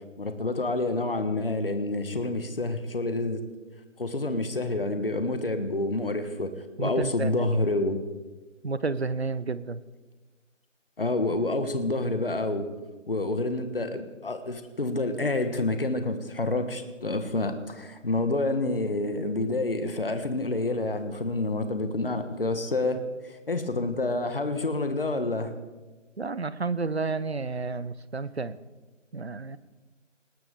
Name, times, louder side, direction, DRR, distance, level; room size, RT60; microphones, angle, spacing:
voice 1, 0.2-3.4 4.0-6.5 6.8-8.0 11.0-12.6 13.1-23.0 23.3-25.5, left 2 dB, 45° left, 8 dB, 1.4 m, -28 dB
voice 2, 6.8-7.5 8.6-9.8 26.2-28.6 29.1-29.6, right 4 dB, 55° right, 17 dB, 0.8 m, -31 dB
19.5 x 18.0 x 3.7 m, 1.2 s
figure-of-eight pair, 180°, 38 cm